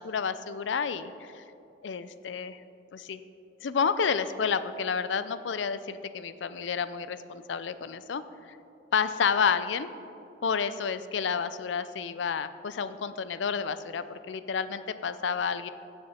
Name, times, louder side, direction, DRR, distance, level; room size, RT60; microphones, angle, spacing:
voice 1, 0.0-1.4 1.8-2.6 2.9-3.2 3.6-8.2 8.9-9.9 10.4-15.7, left 6 dB, 75° left, 13 dB, 0.5 m, -30 dB
16.0 x 6.7 x 4.3 m, 2.8 s
head